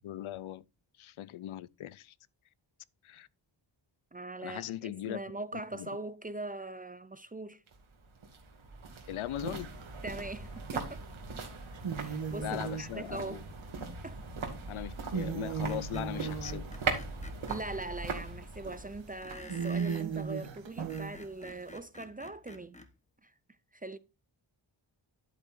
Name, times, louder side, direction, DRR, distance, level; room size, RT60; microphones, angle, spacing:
voice 1, 0.0-0.6 1.0-2.1 3.0-3.3 4.4-5.2 5.7-5.9 9.1-9.7 12.4-13.4 14.7-16.7, left 13 dB, 85° left, 0.5 m, -39 dB
voice 2, 4.1-7.6 10.0-11.1 11.9-13.5 14.0-14.2 17.5-22.8 23.2-23.3 23.7-24.0, right 2 dB, 20° right, 0.3 m, -41 dB
sound 1, 7.7-20.8 21.1-21.2, right 4 dB, 85° right, 2.2 m, -40 dB
sound 2, 9.4-10.0 11.1-11.2 11.7-14.5 14.9-17.9 18.5-18.7 19.1-19.2 19.5-21.7, right 6 dB, 65° right, 1.4 m, -37 dB
Screech, 15.7-17.6 19.2-20.1 20.7-22.9, left 2 dB, 15° left, 1.1 m, -50 dB
11.0 x 8.5 x 2.6 m
wide cardioid pair, 155°, 47 cm